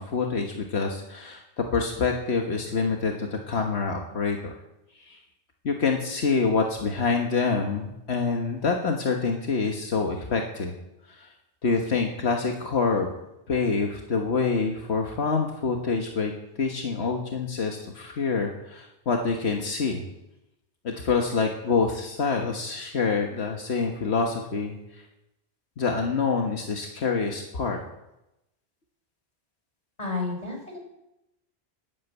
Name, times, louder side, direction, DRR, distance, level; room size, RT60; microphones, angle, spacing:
voice 1, 0.0-4.5 5.1-5.2 5.7-10.7 11.1-11.3 11.6-13.1 13.5-16.3 16.6-20.0 20.8-25.0 25.8-27.8, left 4 dB, 80° left, 2 dB, 1.7 m, -26 dB
voice 2, 30.0-30.8, left 3 dB, 35° left, 1 dB, 4.6 m, -31 dB
11.5 x 11.5 x 8.3 m, 0.89 s
omnidirectional pair, 1.1 m